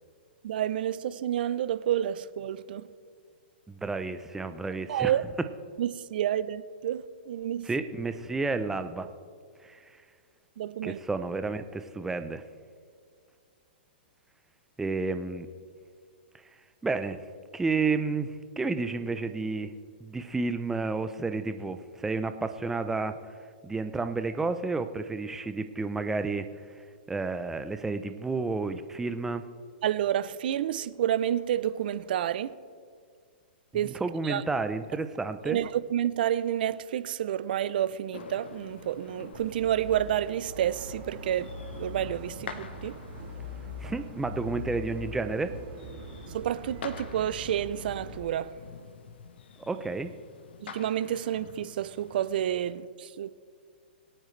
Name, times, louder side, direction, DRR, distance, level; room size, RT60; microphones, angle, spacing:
voice 1, 0.4-2.8 4.9-5.2 5.8-7.7 10.6-11.0 29.8-32.5 33.7-34.0 34.2-34.4 35.5-43.0 46.3-48.6 50.6-53.3, right 11 dB, 60° right, 0.5 m, -29 dB
voice 2, 3.7-5.1 7.6-9.1 9.6-9.8 10.8-12.4 14.8-15.5 16.8-17.2 17.5-19.7 20.0-23.2 23.6-26.5 27.1-29.4 33.8-35.6 43.8-45.5 49.6-50.1, right 3 dB, 5° right, 0.6 m, -31 dB
sound 1, 38.1-52.7, left 6 dB, 75° left, 1.0 m, -48 dB
sound 2, 39.3-48.2, left 1 dB, 30° right, 3.6 m, -42 dB
22.5 x 8.9 x 3.3 m
hypercardioid pair, 145°, 6 cm